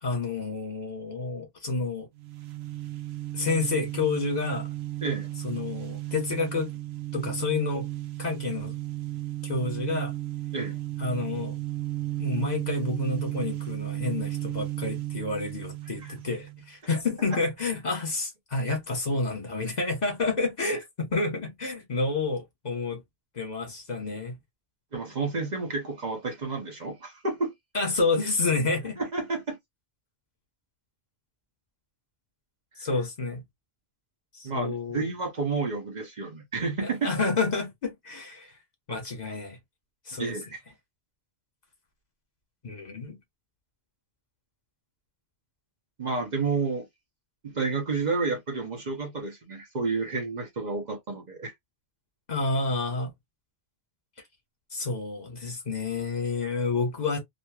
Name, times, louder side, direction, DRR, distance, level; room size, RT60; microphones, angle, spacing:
voice 1, 0.0-2.1 3.3-4.7 5.4-6.7 7.1-7.9 8.2-8.8 9.4-10.1 11.0-11.6 12.2-23.0 23.3-24.4 27.7-29.0 32.8-33.4 34.3-35.1 36.8-38.6 38.9-39.6 40.1-40.3 42.6-43.2 52.3-53.1 54.7-57.2, left 3 dB, 45° left, 1.2 m, -29 dB
sound 1, 2.2-16.7, right 15 dB, 90° right, 0.8 m, -34 dB
voice 2, 24.9-27.9 29.0-29.6 34.4-37.1 40.2-40.6 46.0-46.9 47.4-51.5, right 4 dB, 50° right, 0.8 m, -30 dB
3.0 x 2.6 x 2.2 m
omnidirectional pair, 1.0 m